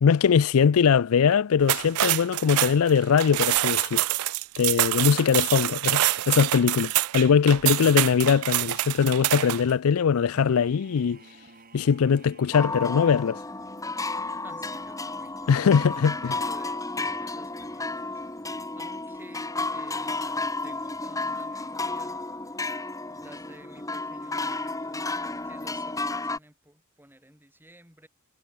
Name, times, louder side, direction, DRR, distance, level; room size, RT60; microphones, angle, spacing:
voice 1, 0.0-4.1 4.6-11.2 11.7-13.4 15.5-16.4, left 6 dB, 65° left, 0.4 m, -21 dB
sound 1, 1.6-9.7, right 16 dB, 70° right, 0.4 m, -26 dB
sound 2, 10.4-12.8, right 3 dB, 40° right, 3.9 m, -52 dB
sound 3, 12.5-26.4, left 3 dB, 15° left, 2.5 m, -32 dB
voice 2, 14.4-15.4 15.9-18.2 18.8-22.2 23.0-25.0 25.4-28.1, right 1 dB, 10° right, 7.4 m, -53 dB
head